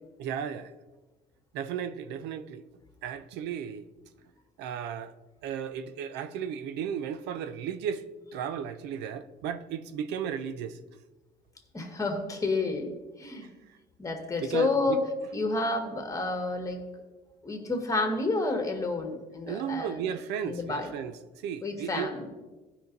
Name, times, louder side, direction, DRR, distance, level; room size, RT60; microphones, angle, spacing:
voice 1, 0.2-0.7 1.5-2.6 3.0-3.9 4.6-5.2 5.4-8.1 8.3-10.8 14.4-15.0 19.5-22.1, right 8 dB, 90° right, 0.6 m, -34 dB
voice 2, 11.7-12.9 13.2-13.5 14.0-15.0 15.3-16.8 17.4-20.0 20.4-20.9 21.6-22.3, left 3 dB, 20° left, 1.8 m, -30 dB
15.0 x 5.6 x 4.0 m
cardioid pair, 110°, 17 cm